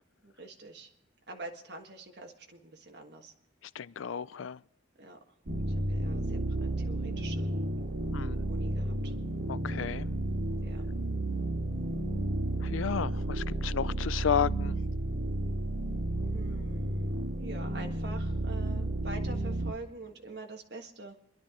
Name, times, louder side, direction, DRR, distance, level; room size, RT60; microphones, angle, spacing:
voice 1, 0.2-0.9 1.3-3.3 5.0-5.2 5.9-7.5 8.5-9.1 10.6-10.8 16.3-17.1 17.4-21.2, right 2 dB, 55° right, 1.6 m, -45 dB
voice 2, 3.7-4.6 8.1-8.4 9.5-10.1 12.6-14.8, left 7 dB, 85° left, 0.4 m, -32 dB
sound 1, 5.5-19.7, right 1 dB, 85° right, 1.9 m, -32 dB
27.0 x 11.0 x 3.8 m
head